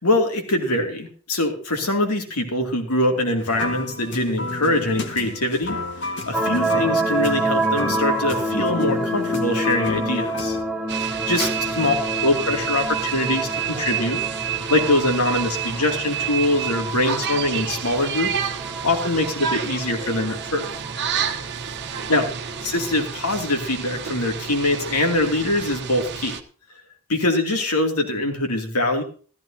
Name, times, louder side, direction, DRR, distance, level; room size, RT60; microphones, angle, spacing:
voice 1, 0.0-10.6 11.3-11.9 12.2-14.2 14.7-18.3 18.8-20.7 22.1-22.3 22.6-26.4 27.1-29.0, left 1 dB, 80° left, 4 dB, 2.7 m, -23 dB
sound 1, 3.4-10.6, left 3 dB, 55° left, 1.6 m, -32 dB
sound 2, 6.3-22.9, right 2 dB, 5° right, 1.3 m, -28 dB
sound 3, 10.9-26.4, right 8 dB, 50° right, 1.0 m, -29 dB
15.0 x 14.0 x 2.8 m, 0.41 s
head